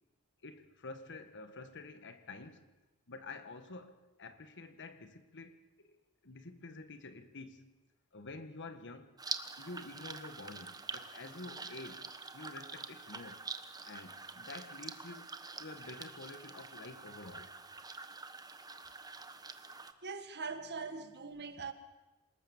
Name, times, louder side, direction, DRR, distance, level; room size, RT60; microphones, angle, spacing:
voice 1, 0.4-2.7 3.1-6.0 6.2-7.7 8.1-9.2 9.6-13.5 13.8-15.3 15.6-17.6 18.9-19.0 21.4-21.7, left 3 dB, 55° left, 1.7 m, -49 dB
sound 1, 9.2-19.9, right 4 dB, 15° right, 1.2 m, -46 dB
voice 2, 20.0-21.7, right 4 dB, 50° right, 1.9 m, -42 dB
27.5 x 19.0 x 7.4 m
head